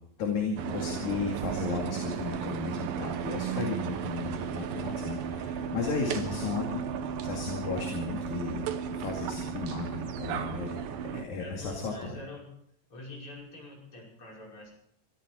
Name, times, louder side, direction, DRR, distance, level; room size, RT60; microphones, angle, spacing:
voice 1, 0.2-6.8 7.2-10.8 11.1-12.2, left 5 dB, 50° left, 0 dB, 3.3 m, -34 dB
sound 1, 0.6-11.2, right 7 dB, 70° right, 2.5 m, -34 dB
voice 2, 5.8-6.4 11.4-12.5 12.9-14.7, left 2 dB, 30° left, -3 dB, 6.4 m, -45 dB
24.0 x 14.0 x 4.4 m, 0.68 s
omnidirectional pair, 4.8 m